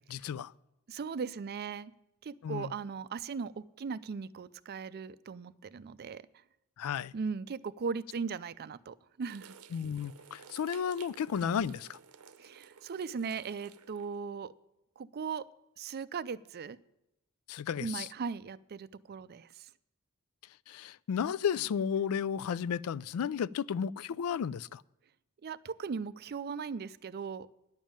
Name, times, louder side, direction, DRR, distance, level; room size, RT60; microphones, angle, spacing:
voice 1, 0.1-0.5 2.4-2.7 6.8-7.1 9.7-12.0 17.5-18.1 20.7-24.8, left 7 dB, 75° left, 0.3 m, -33 dB
voice 2, 0.9-1.9 2.2-6.3 7.1-9.5 12.4-14.5 15.0-15.5 15.8-16.8 17.8-19.7 25.4-27.5, right 5 dB, 45° right, 0.4 m, -38 dB
sound 1, 9.2-14.2, right 7 dB, 75° right, 0.7 m, -55 dB
10.5 x 7.3 x 8.7 m
head